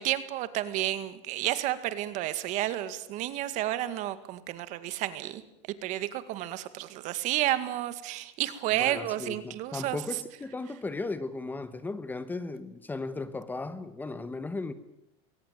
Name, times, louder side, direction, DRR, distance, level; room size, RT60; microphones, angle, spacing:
voice 1, 0.0-5.4 5.8-10.0, right 14 dB, 55° right, 2.0 m, -31 dB
voice 2, 8.8-14.7, left 3 dB, 10° left, 1.3 m, -36 dB
22.0 x 18.5 x 9.2 m
supercardioid pair, 135°, 15 cm